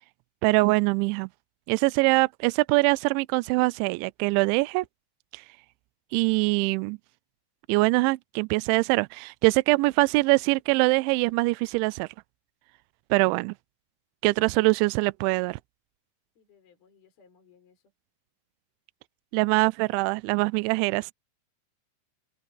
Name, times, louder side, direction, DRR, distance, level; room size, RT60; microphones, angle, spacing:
voice 1, 0.4-1.3 1.7-4.9 5.3-5.4 6.1-7.0 7.7-12.1 13.1-13.5 14.2-15.6 19.3-21.1, right 25 dB, 85° right, 2.8 m, -23 dB
voice 2, 16.4-17.9 21.0-21.1, left 6 dB, 50° left, 6.4 m, -61 dB
open air
omnidirectional pair, 5.6 m